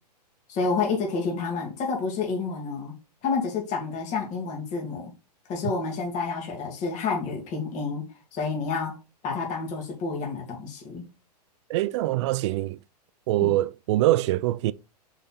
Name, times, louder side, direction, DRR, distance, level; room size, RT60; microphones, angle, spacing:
voice 1, 0.5-2.9 3.2-5.1 5.5-8.1 8.3-9.0 9.2-11.1 13.4-13.5, left 4 dB, 35° left, 2.4 m, -29 dB
voice 2, 11.7-12.8 13.3-14.7, right 16 dB, 45° right, 0.4 m, -24 dB
6.4 x 4.3 x 4.1 m
hypercardioid pair, 115°, 21 cm